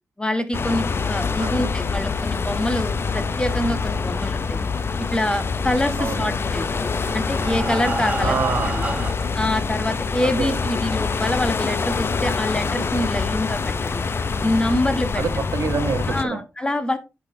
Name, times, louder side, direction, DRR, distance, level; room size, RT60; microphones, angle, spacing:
voice 1, 0.2-4.6 5.1-6.8 7.1-8.4 8.7-8.8 9.3-14.0 14.4-15.2 16.1-17.0, left 1 dB, 15° left, 9 dB, 1.2 m, -25 dB
sound 1, 0.5-16.2, left 4 dB, 45° left, 0.6 m, -25 dB
voice 2, 1.4-1.7 6.0-6.4 8.2-8.8 10.2-10.6 15.2-16.4, right 5 dB, 65° right, 9 dB, 0.9 m, -27 dB
Breathing, 6.5-9.5 10.2-10.3 10.7-10.8 11.2-11.3, right 2 dB, 25° right, 0.9 m, -30 dB
10.0 x 5.7 x 2.7 m, 0.27 s
cardioid pair, 85°, 5 cm